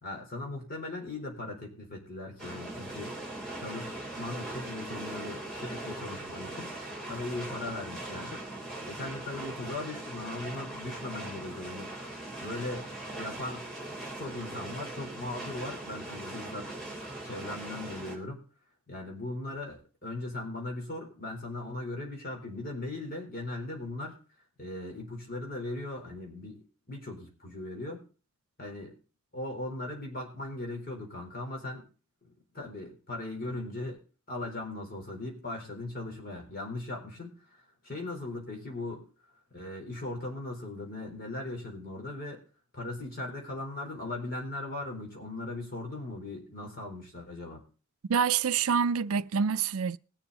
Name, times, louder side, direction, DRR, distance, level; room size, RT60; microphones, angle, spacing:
voice 1, 0.0-3.2 3.6-6.7 7.1-8.4 8.9-11.9 12.4-13.7 14.1-16.7 17.2-18.4 18.9-24.2 24.6-28.1 28.6-28.9 29.3-31.8 32.2-34.0 34.3-37.4 37.8-39.1 39.5-42.4 42.7-47.6, left 2 dB, 45° left, 4.2 m, -38 dB
sound 1, 2.4-18.2, right 2 dB, ahead, 3.7 m, -40 dB
voice 2, 48.1-50.0, right 6 dB, 85° right, 0.5 m, -26 dB
20.5 x 7.1 x 4.1 m
head